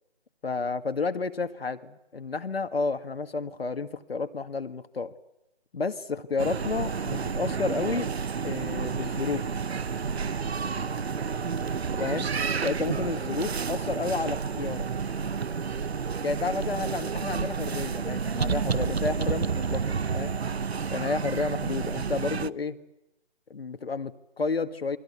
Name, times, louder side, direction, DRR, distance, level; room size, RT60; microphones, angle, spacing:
voice 1, 0.4-5.1 5.7-8.1 8.4-9.5 12.0-12.3 12.6-14.9 16.2-20.3 20.9-22.8 23.5-25.0, left 4 dB, 60° left, 9 dB, 1.8 m, -31 dB
sound 1, 6.4-22.5, right 5 dB, 70° right, 1.0 m, -30 dB
voice 2, 11.5-11.6, right 5 dB, 15° right, 4 dB, 3.8 m, -57 dB
28.5 x 24.0 x 8.2 m, 0.91 s
figure-of-eight pair, 160°, 33 cm